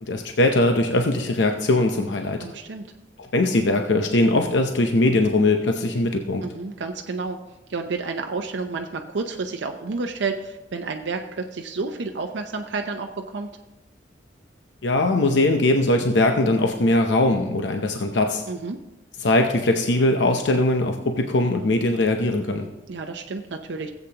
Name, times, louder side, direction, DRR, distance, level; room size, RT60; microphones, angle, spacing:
voice 1, 0.0-2.5 3.2-6.5 14.8-18.4 19.2-22.7, left 2 dB, 80° left, 4 dB, 0.7 m, -21 dB
voice 2, 2.4-2.9 6.4-7.4 7.7-13.6 18.5-18.8 22.9-23.9, right 4 dB, 80° right, 4 dB, 0.6 m, -30 dB
16.5 x 8.1 x 2.9 m, 1.0 s
head